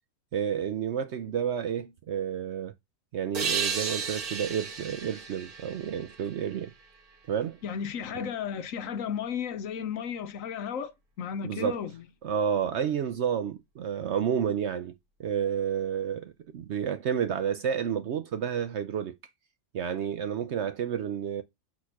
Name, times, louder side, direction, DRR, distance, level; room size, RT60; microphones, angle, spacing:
voice 1, 0.3-2.7 3.1-6.7 7.3-7.6 8.1-8.3 11.4-11.8 12.2-19.2 19.7-21.4, right 8 dB, 65° right, 0.7 m, -30 dB
sound 1, 3.3-6.8, right 6 dB, 85° right, 2.0 m, -34 dB
voice 2, 7.6-10.9 11.2-11.9, left 8 dB, 70° left, 1.1 m, -34 dB
6.4 x 4.2 x 5.7 m
omnidirectional pair, 1.5 m